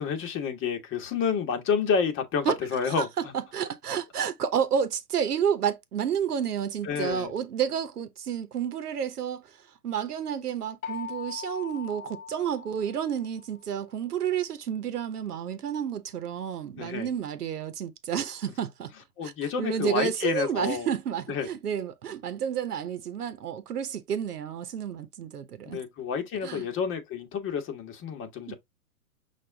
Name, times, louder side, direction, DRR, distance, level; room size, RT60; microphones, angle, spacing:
voice 1, 0.0-3.3 6.8-7.3 16.7-17.1 19.2-20.9 21.3-21.5 25.6-28.5, left 6 dB, 25° left, 1.2 m, -29 dB
voice 2, 2.9-9.6 9.8-18.9 19.2-19.3 19.6-25.8 26.4-26.7 28.5-28.6, right 8 dB, 90° right, 0.9 m, -30 dB
sound 1, 10.8-13.6, left 7 dB, 65° left, 0.8 m, -40 dB
6.0 x 2.5 x 3.3 m
hypercardioid pair, 120°, 45 cm